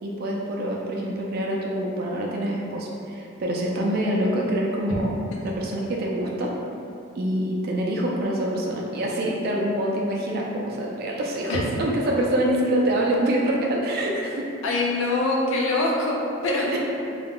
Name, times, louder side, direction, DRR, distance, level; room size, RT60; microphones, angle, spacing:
voice 1, 0.0-5.1 5.4-6.5 7.2-14.4, right 1 dB, 45° right, -2 dB, 0.3 m, -25 dB
voice 2, 14.6-16.8, left 2 dB, 65° left, -2 dB, 0.4 m, -24 dB
2.3 x 2.0 x 3.5 m, 2.7 s
head